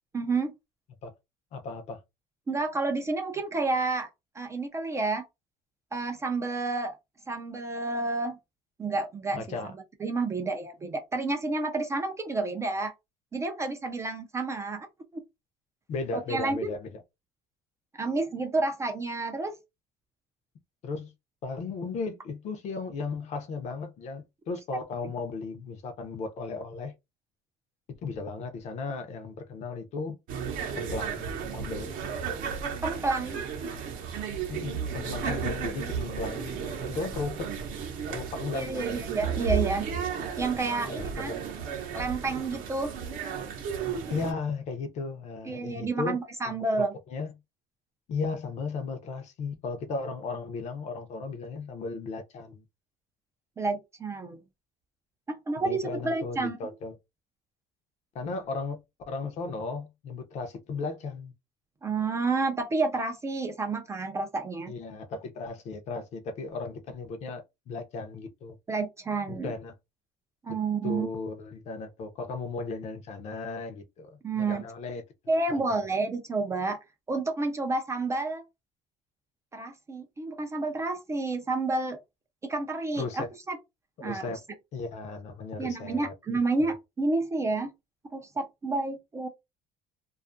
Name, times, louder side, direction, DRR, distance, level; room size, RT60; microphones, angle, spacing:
voice 1, 0.1-0.5 2.5-4.1 4.4-5.2 5.9-7.0 7.3-8.4 8.8-9.4 10.0-12.9 13.3-14.9 16.1-16.7 18.0-19.5 32.8-33.4 35.2-35.4 36.3-36.4 38.5-39.9 40.4-41.3 41.9-42.9 45.5-46.9 53.6-54.4 55.3-56.6 61.8-64.7 68.7-69.5 70.4-71.1 74.2-74.6 75.3-76.8 77.1-78.4 79.5-82.0 82.5-83.6 84.0-84.3 85.6-87.7 88.1-89.3, right 3 dB, 15° right, 0.3 m, -30 dB
voice 2, 1.5-2.0 9.3-9.7 15.9-17.0 20.8-21.1 21.4-26.9 28.0-30.2 30.8-31.3 31.5-32.0 34.5-36.6 36.9-37.5 38.1-39.0 40.9-41.4 44.1-46.2 46.5-47.3 48.1-52.6 55.6-56.9 58.1-58.8 59.1-61.3 64.7-68.6 69.3-69.7 70.8-75.0 75.5-75.8 83.0-83.3 84.0-84.4 84.7-86.7, left 4 dB, 40° left, 0.5 m, -36 dB
sound 1, 30.3-44.3, right 6 dB, 55° right, 0.7 m, -33 dB
2.5 x 2.3 x 2.5 m
cardioid pair, 165°, 17 cm